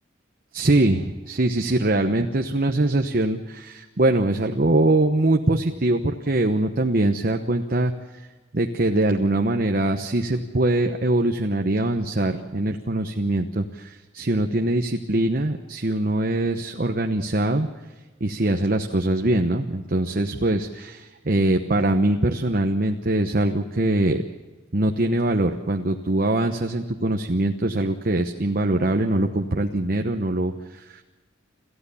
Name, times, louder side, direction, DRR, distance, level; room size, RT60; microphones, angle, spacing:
voice 1, 0.5-8.2 8.5-17.7 18.2-24.2 24.7-31.0, right 2 dB, 45° right, 5 dB, 1.0 m, -23 dB
28.0 x 14.5 x 7.0 m, 1.3 s
head